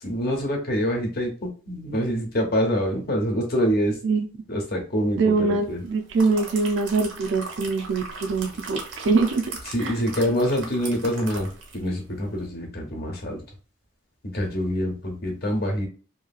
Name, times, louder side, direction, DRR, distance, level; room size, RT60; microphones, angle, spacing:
voice 1, 0.0-4.0 4.5-5.8 9.7-13.4 14.3-15.9, equal, 50° left, 1 dB, 0.9 m, -26 dB
voice 2, 5.2-8.8 9.0-9.4 9.8-9.9, right 4 dB, 70° right, 5 dB, 0.5 m, -23 dB
sound 1, 5.8-11.9 12.2-12.4, right 3 dB, 90° right, 1.0 m, -38 dB
2.9 x 2.7 x 2.3 m, 0.37 s
head